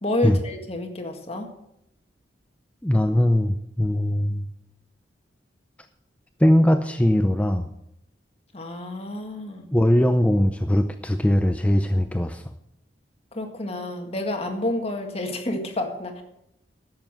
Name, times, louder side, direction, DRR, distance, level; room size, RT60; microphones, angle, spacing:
voice 1, 0.0-1.5 8.5-9.7 13.3-16.2, left 1 dB, 35° left, 3 dB, 1.8 m, -29 dB
voice 2, 2.8-4.5 6.4-7.7 9.7-12.4, left 1 dB, 5° left, 7 dB, 0.5 m, -20 dB
12.0 x 7.8 x 7.5 m, 0.79 s
head